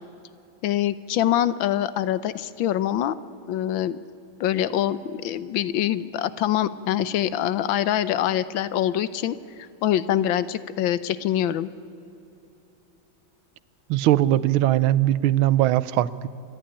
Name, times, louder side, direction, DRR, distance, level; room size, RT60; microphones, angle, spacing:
voice 1, 0.6-3.1 3.5-4.0 4.4-9.4 9.8-11.7, left 11 dB, 75° left, 15 dB, 1.5 m, -24 dB
voice 2, 13.9-16.3, right 14 dB, 85° right, 18 dB, 1.5 m, -20 dB
26.5 x 11.5 x 9.8 m, 2.9 s
omnidirectional pair, 2.2 m